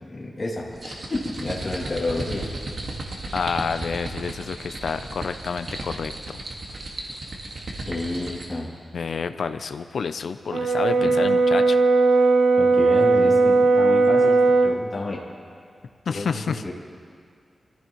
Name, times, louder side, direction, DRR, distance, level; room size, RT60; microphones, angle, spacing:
voice 1, 0.1-2.5 7.9-8.7 11.0-11.3 12.6-15.2 16.1-16.7, left 2 dB, 30° left, -4 dB, 2.6 m, -30 dB
sound 1, 0.7-8.6, right 2 dB, 50° right, 1.7 m, -35 dB
voice 2, 3.3-6.1 8.9-11.8 16.1-16.6, left 5 dB, 75° left, 9 dB, 0.5 m, -29 dB
Brass instrument, 10.5-14.8, right 3 dB, 85° right, 0.7 m, -18 dB
25.5 x 14.5 x 3.1 m, 2.2 s
wide cardioid pair, 175°, 0 cm